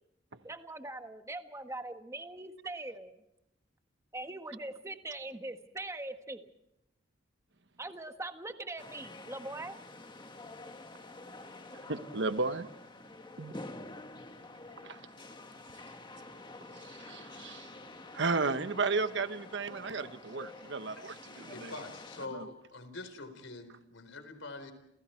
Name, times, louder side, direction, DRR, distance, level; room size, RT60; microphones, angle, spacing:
voice 1, 0.4-3.1 4.1-6.5 7.8-9.7, right 2 dB, 15° right, 6 dB, 1.6 m, -41 dB
sound 1, 8.8-22.3, left 2 dB, 25° left, 1.7 m, -48 dB
voice 2, 11.9-12.7 13.4-13.5 14.8-15.0 16.7-17.7 18.1-21.7 22.3-22.5, right 3 dB, 65° right, 10 dB, 1.2 m, -34 dB
voice 3, 21.5-24.7, left 2 dB, 80° left, 9 dB, 4.3 m, -45 dB
29.5 x 29.0 x 4.6 m, 0.84 s
head